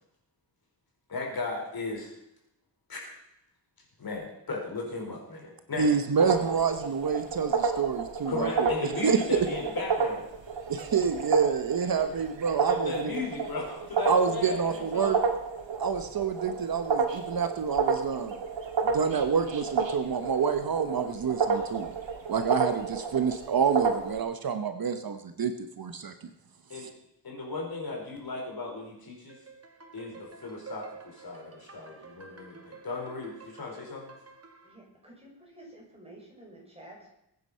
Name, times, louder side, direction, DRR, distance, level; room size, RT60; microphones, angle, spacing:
voice 1, 1.1-2.1 2.9-3.1 4.0-6.2 8.3-10.2 12.6-15.2 26.7-26.9 27.2-29.4 29.9-34.1, left 3 dB, 55° left, 0 dB, 4.8 m, -36 dB
voice 2, 5.8-8.7 9.0-9.4 10.7-13.2 14.0-15.2 15.8-18.4 18.8-21.9 22.3-26.1 26.8-26.9, right 6 dB, 55° right, 8 dB, 1.0 m, -28 dB
sound 1, 6.2-24.2, right 5 dB, 80° right, 2.5 m, -31 dB
sound 2, 29.3-34.8, right 4 dB, 35° right, 2.2 m, -50 dB
voice 3, 34.6-37.1, right 1 dB, 15° right, -2 dB, 5.7 m, -51 dB
21.0 x 9.4 x 5.6 m, 0.84 s
wide cardioid pair, 150°, 44 cm